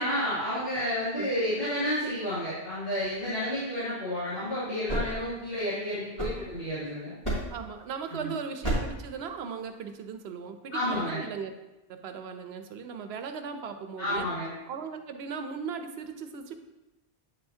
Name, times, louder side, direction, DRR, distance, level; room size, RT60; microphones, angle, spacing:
voice 1, 0.0-7.1 8.1-8.3 10.7-11.2 14.0-14.5, left 1 dB, 60° left, -14 dB, 2.7 m, -31 dB
sound 1, 4.8-6.8 7.2-7.7 8.6-9.1, right 1 dB, 30° left, 2.4 m, -33 dB
voice 2, 7.5-11.5 11.9-14.2 14.6-16.6, right 6 dB, 80° right, 7 dB, 0.8 m, -38 dB
8.7 x 5.5 x 2.7 m, 1.0 s
omnidirectional pair, 1.1 m